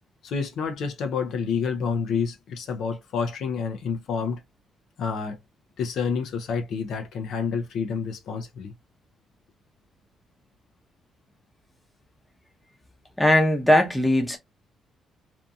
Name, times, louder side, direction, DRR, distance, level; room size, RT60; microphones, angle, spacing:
voice 1, 0.2-4.4 5.0-5.4 5.8-8.7, left 5 dB, 70° left, 0.5 m, -28 dB
voice 2, 13.2-14.4, left 1 dB, 5° left, 0.7 m, -19 dB
2.6 x 2.6 x 2.3 m
cardioid pair, 90°, 0 cm